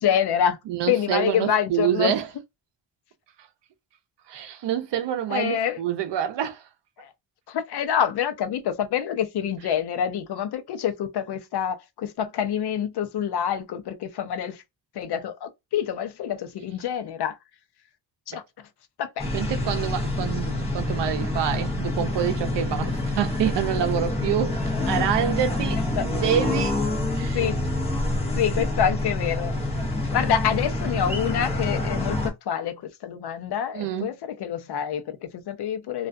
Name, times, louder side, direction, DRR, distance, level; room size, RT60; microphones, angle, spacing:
voice 1, 0.0-0.6 0.9-2.1 5.3-5.8 7.0-7.1 7.5-14.6 14.9-17.4 18.3-18.4 19.0-19.3 22.7-22.9 26.0-26.1 27.3-27.6 28.3-29.5 30.1-36.1, left 9 dB, 60° left, 0.6 m, -26 dB
voice 2, 0.7-2.3 4.3-6.6 18.3-18.4 19.3-24.6 24.9-26.8 27.1-27.4 28.6-28.7 33.7-34.1, right 10 dB, 70° right, 0.6 m, -27 dB
sound 1, 19.2-32.3, left 2 dB, 15° left, 0.7 m, -27 dB
2.4 x 2.2 x 2.5 m
wide cardioid pair, 135°, 44 cm